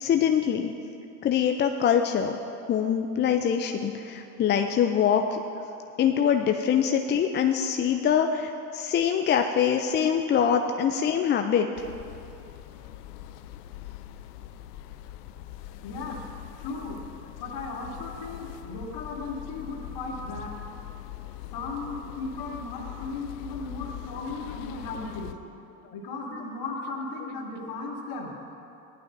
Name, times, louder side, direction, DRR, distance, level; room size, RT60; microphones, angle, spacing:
voice 1, 0.0-0.7 1.2-2.4 2.7-5.4 6.0-11.9, left 8 dB, 25° left, 5 dB, 0.4 m, -24 dB
sound 1, 11.8-25.3, left 12 dB, 80° left, 0.6 m, -42 dB
voice 2, 15.8-16.2 16.6-17.0 17.4-20.5 21.5-25.4 25.9-28.3, left 3 dB, 50° left, -2 dB, 2.5 m, -36 dB
15.5 x 11.5 x 2.7 m, 2.8 s
hypercardioid pair, 85°, 46 cm